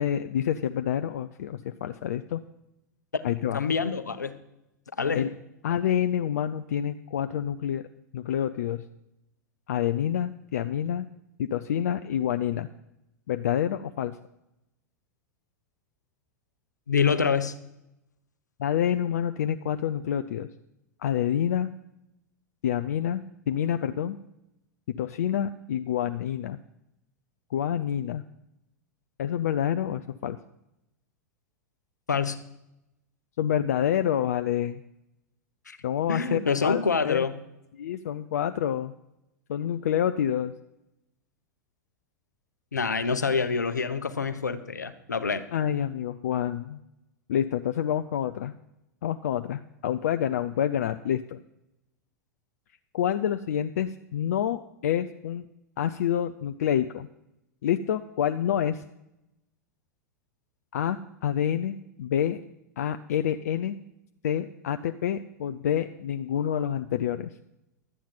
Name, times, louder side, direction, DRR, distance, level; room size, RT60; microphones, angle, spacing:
voice 1, 0.0-2.4 3.2-3.6 5.1-5.3 5.6-7.9 8.1-8.8 9.7-11.1 11.4-12.7 13.3-14.2 18.6-20.5 21.0-21.7 22.6-24.2 25.0-26.6 27.5-28.2 29.2-30.4 33.4-34.8 35.8-37.2 37.7-38.9 39.5-40.5 45.5-46.8 47.3-48.5 49.0-51.4 52.9-55.5 55.8-57.1 57.6-58.8 60.7-62.4 62.8-63.8 64.2-67.3, left 10 dB, 60° left, 9 dB, 0.4 m, -28 dB
voice 2, 3.5-4.3 5.0-5.2 16.9-17.5 32.1-32.4 35.7-35.8 36.1-37.3 42.7-45.4, left 5 dB, 80° left, 11 dB, 0.8 m, -26 dB
12.0 x 8.6 x 5.5 m, 0.87 s
figure-of-eight pair, 90°, 9 cm